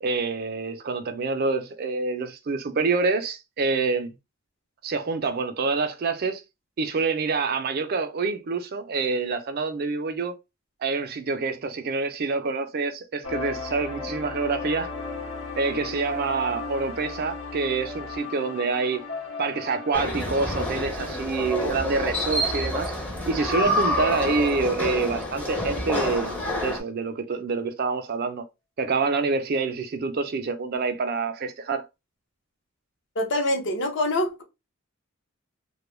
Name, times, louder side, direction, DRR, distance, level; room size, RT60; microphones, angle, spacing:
voice 1, 0.0-4.1 4.8-6.4 6.8-10.4 10.8-14.9 15.6-19.0 19.4-22.9 23.3-28.4 28.8-31.8, right 4 dB, 50° right, 0.4 m, -27 dB
sound 1, 13.2-23.7 24.1-24.2 24.7-24.8, left 3 dB, 80° left, 0.9 m, -37 dB
sound 2, 19.9-26.8, left 1 dB, 5° left, 0.5 m, -28 dB
voice 2, 33.2-34.4, left 1 dB, 60° left, 0.7 m, -25 dB
2.2 x 2.1 x 3.1 m
head